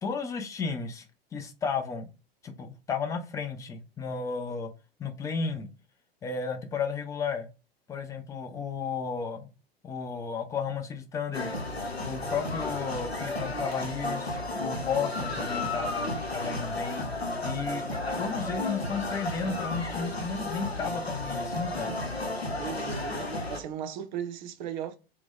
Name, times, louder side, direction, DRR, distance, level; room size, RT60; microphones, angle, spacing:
voice 1, 0.0-1.0 1.3-2.1 2.4-4.7 5.0-5.7 6.2-7.5 7.9-9.5 9.8-11.5 12.0-17.0 17.4-17.9 18.2-21.9, left 5 dB, 10° left, 0.4 m, -33 dB
sound 1, 11.3-23.6, left 2 dB, 90° left, 0.7 m, -33 dB
voice 2, 22.6-25.0, right 8 dB, 50° right, 0.6 m, -36 dB
2.9 x 2.1 x 3.5 m
figure-of-eight pair, 90°, 31 cm